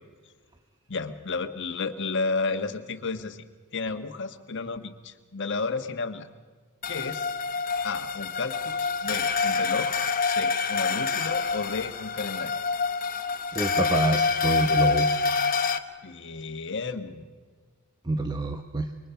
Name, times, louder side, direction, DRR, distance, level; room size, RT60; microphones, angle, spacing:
voice 1, 0.9-3.4 3.7-6.3 6.8-7.3 7.8-12.6 16.0-17.3, left 4 dB, 55° left, 7 dB, 1.3 m, -32 dB
sound 1, 6.8-15.8, left 5 dB, 40° left, 1.0 m, -26 dB
voice 2, 13.5-15.1 18.1-18.9, right 2 dB, 20° right, 6 dB, 0.9 m, -27 dB
27.0 x 23.0 x 5.7 m, 1.5 s
head